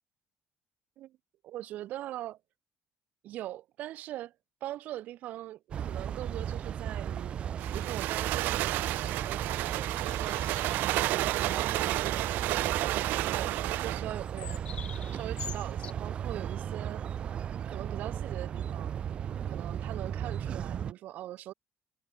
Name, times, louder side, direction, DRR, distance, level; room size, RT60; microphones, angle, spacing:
voice 1, 1.4-2.4 3.2-4.3 4.6-7.4 7.7-10.4 10.7-17.0 17.7-18.9 19.4-21.5, right 14 dB, 60° right, 1.6 m, -42 dB
sound 1, 5.7-20.9, right 9 dB, 35° right, 0.8 m, -36 dB
sound 2, 7.6-14.1, right 18 dB, 85° right, 1.8 m, -31 dB
sound 3, 9.6-11.0 11.4-11.6 11.9-12.5 14.0-15.9, left 8 dB, 35° left, 4.9 m, -47 dB
cardioid pair, 175°, 3 cm